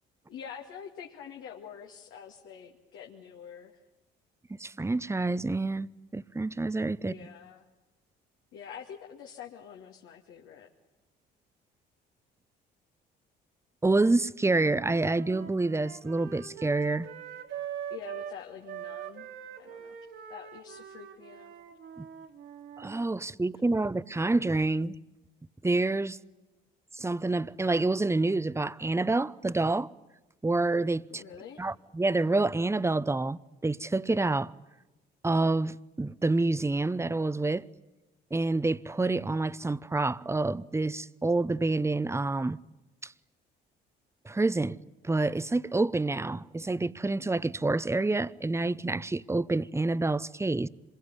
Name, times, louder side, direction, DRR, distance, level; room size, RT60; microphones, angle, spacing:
voice 1, 0.3-3.8 7.0-7.6 8.5-10.7 17.9-19.3 19.6-20.0 20.3-21.5 31.1-31.6, left 8 dB, 75° left, 2.4 m, -46 dB
voice 2, 4.5-7.1 13.8-17.1 22.0-22.1 22.8-25.0 25.6-26.2 26.9-29.9 30.4-31.2 31.6-34.5 35.2-37.7 38.3-42.6 43.0-43.1 44.2-44.8 45.0-50.7, right 2 dB, 15° right, 0.9 m, -28 dB
sound 1, 14.5-18.4 18.7-23.0, right 9 dB, 65° right, 3.0 m, -42 dB
26.5 x 22.0 x 9.9 m
supercardioid pair, 65°, 21 cm